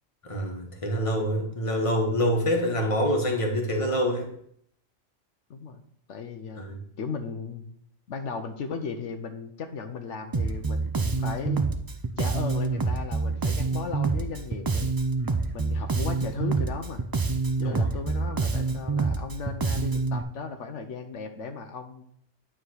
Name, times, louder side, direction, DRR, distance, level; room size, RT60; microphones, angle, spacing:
voice 1, 0.2-4.3 6.6-6.8 17.6-17.9, equal, 30° left, 2 dB, 1.3 m, -26 dB
voice 2, 5.5-5.8 6.1-7.7 8.1-11.6 12.2-14.9 15.5-17.0 17.6-22.1, left 5 dB, 80° left, 7 dB, 1.1 m, -36 dB
Bass guitar, 10.3-20.2, right 4 dB, 40° right, 0.3 m, -27 dB
9.5 x 3.7 x 6.3 m, 0.68 s
omnidirectional pair, 1.2 m